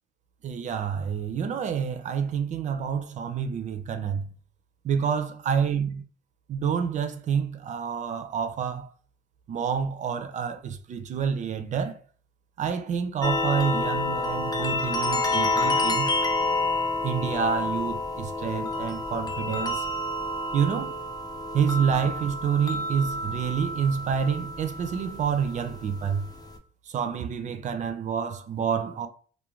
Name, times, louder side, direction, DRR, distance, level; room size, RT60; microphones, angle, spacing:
voice 1, 0.4-4.2 4.8-6.0 6.5-8.9 9.5-12.0 12.6-16.1 17.0-19.9 20.5-20.9 21.5-26.2 26.9-29.1, right 7 dB, 45° right, 0.4 m, -28 dB
sound 1, 13.2-26.6, left 2 dB, 20° left, 0.5 m, -29 dB
2.4 x 2.2 x 3.0 m
cardioid pair, 100°, 17 cm